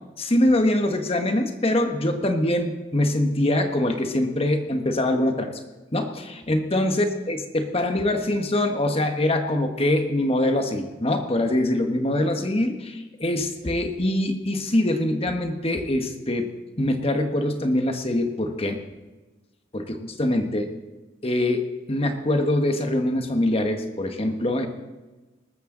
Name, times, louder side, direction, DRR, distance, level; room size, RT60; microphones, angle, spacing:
voice 1, 0.2-5.6 5.9-16.5 16.8-18.8 19.7-20.7 21.2-24.7, left 1 dB, 30° left, 6 dB, 1.4 m, -24 dB
19.5 x 13.5 x 3.9 m, 1.2 s
head